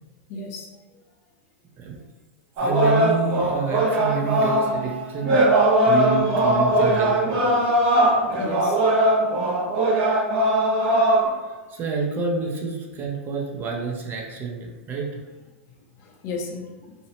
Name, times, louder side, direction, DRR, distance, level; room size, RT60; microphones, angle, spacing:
voice 1, 0.3-0.7 6.1-7.0 8.3-8.8 16.0-17.0, left 3 dB, 45° left, 1 dB, 0.5 m, -36 dB
voice 2, 2.6-7.6 11.7-15.2, right 5 dB, 30° right, 0 dB, 0.5 m, -28 dB
sound 1, 2.6-11.3, right 1 dB, 50° right, 0.9 m, -20 dB
2.6 x 2.0 x 2.8 m, 1.3 s
hypercardioid pair, 120°, 7 cm